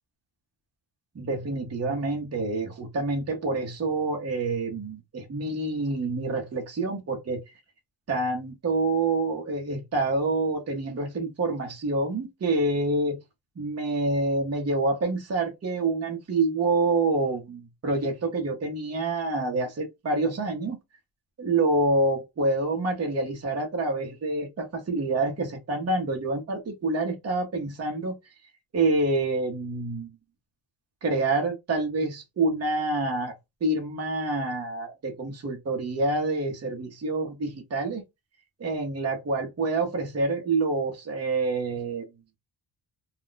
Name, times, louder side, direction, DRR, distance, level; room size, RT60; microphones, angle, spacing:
voice 1, 1.1-7.4 8.1-13.2 13.6-20.8 21.4-28.2 28.7-30.1 31.0-33.3 33.6-38.0 38.6-42.1, right 2 dB, 35° right, 0.8 m, -27 dB
2.4 x 2.2 x 3.8 m
wide cardioid pair, 140°, 46 cm